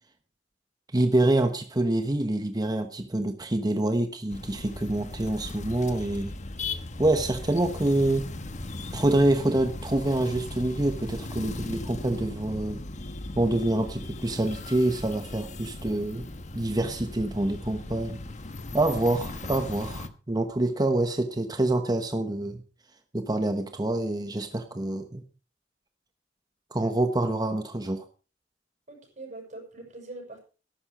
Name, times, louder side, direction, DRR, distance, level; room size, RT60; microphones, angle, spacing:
voice 1, 0.9-6.4 7.0-8.3 8.9-12.8 13.4-16.2 16.5-18.2 18.7-22.6 23.1-25.2 26.7-28.0, right 1 dB, 20° right, 7 dB, 1.0 m, -26 dB
sound 1, 4.3-20.1, left 2 dB, 40° left, 1.2 m, -38 dB
voice 2, 20.7-21.1 28.9-30.4, right 2 dB, 45° right, 2 dB, 6.9 m, -43 dB
13.0 x 12.0 x 5.1 m, 0.35 s
head